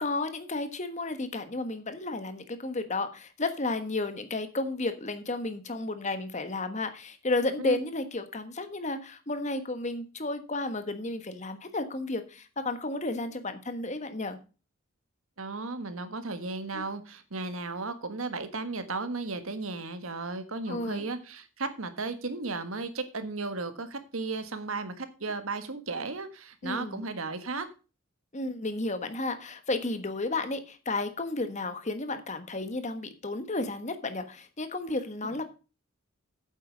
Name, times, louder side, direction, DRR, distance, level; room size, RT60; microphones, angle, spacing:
voice 1, 0.0-14.4 16.7-16.9 20.7-21.1 26.6-27.1 28.3-35.5, left 2 dB, 35° left, 9 dB, 1.3 m, -32 dB
voice 2, 15.4-27.7, right 3 dB, 75° right, 10 dB, 1.5 m, -35 dB
8.9 x 7.9 x 5.1 m, 0.33 s
head